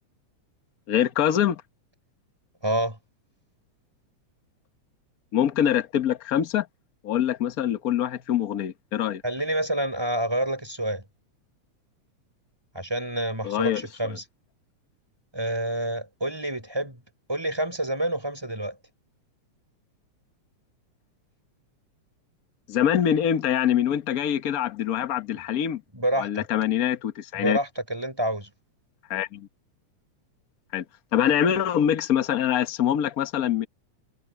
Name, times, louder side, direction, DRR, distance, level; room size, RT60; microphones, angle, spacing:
voice 1, 0.9-1.6 5.3-6.7 7.0-9.2 13.4-14.2 22.7-25.8 26.2-27.6 29.1-29.5 30.7-30.8 31.1-33.7, left 10 dB, 75° left, 0.8 m, -24 dB
voice 2, 2.6-3.0 9.2-11.0 12.7-14.2 15.3-17.0 17.3-18.8 25.3-25.4 25.9-26.4 27.3-28.5, right 1 dB, 10° right, 5.6 m, -28 dB
omnidirectional pair, 3.3 m